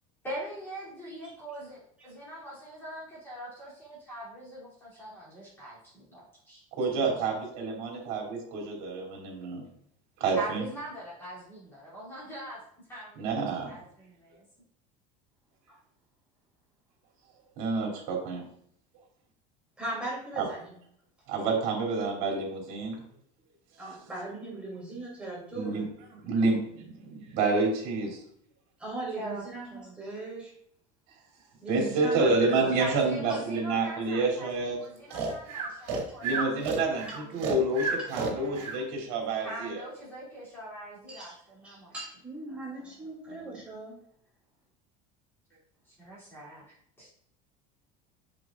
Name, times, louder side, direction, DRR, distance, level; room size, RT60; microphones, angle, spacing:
voice 1, 0.2-6.6 7.0-7.1 10.4-12.6 12.9-14.5 29.2-29.4 29.7-29.9 32.6-36.4 37.1-37.6 38.1-38.7 39.4-41.9 42.5-42.6 45.8-46.6 47.0-47.1, right 1 dB, 15° left, -9 dB, 3.1 m, -42 dB
voice 2, 6.7-9.6 10.2-10.6 13.2-13.7 17.6-18.4 20.4-20.5 21.3-23.0 25.5-25.9 26.1-28.2 31.7-34.8 36.2-39.8 43.3-43.5, right 3 dB, 55° right, -1 dB, 2.9 m, -29 dB
voice 3, 19.8-20.7 23.8-25.7 28.8-30.5 31.6-32.8 41.1-41.3 41.6-44.0, right 2 dB, 5° right, -6 dB, 2.9 m, -38 dB
Breathing, 35.1-38.8, right 4 dB, 75° right, 2.0 m, -31 dB
7.6 x 6.7 x 2.5 m, 0.67 s
cardioid pair, 170°, 17 cm